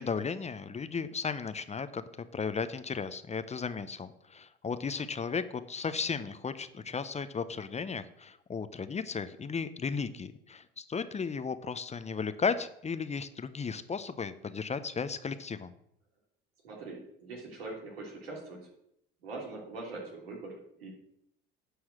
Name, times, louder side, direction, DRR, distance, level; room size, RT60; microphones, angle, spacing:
voice 1, 0.0-2.0 2.3-15.7, left 5 dB, 25° left, 12 dB, 0.7 m, -35 dB
voice 2, 16.6-18.7 19.2-20.9, right 3 dB, 90° right, -2 dB, 3.2 m, -42 dB
9.6 x 4.7 x 7.5 m, 0.74 s
hypercardioid pair, 75°, 29 cm